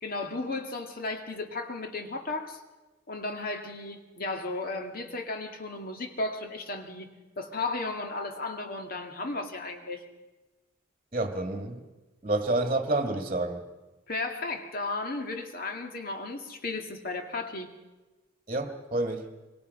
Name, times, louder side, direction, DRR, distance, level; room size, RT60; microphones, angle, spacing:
voice 1, 0.0-2.6 3.1-7.1 7.4-10.0 14.1-17.7, left 3 dB, 45° left, 5 dB, 2.0 m, -34 dB
voice 2, 11.1-11.8 12.2-13.7 18.5-19.3, right 2 dB, 30° right, 6 dB, 1.6 m, -29 dB
24.5 x 24.5 x 5.4 m, 1.2 s
head